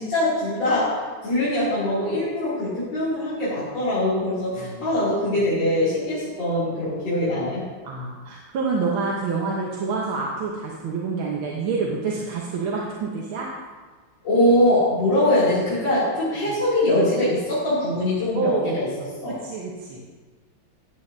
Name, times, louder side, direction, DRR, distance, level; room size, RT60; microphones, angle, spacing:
voice 1, 0.0-7.6 14.2-19.4, left 1 dB, 65° left, -11 dB, 3.4 m, -22 dB
voice 2, 4.6-4.9 7.8-13.5 16.5-16.6 18.3-18.9 19.3-20.1, right 4 dB, 85° right, -3 dB, 1.8 m, -27 dB
14.5 x 8.7 x 2.7 m, 1.4 s
omnidirectional pair, 2.1 m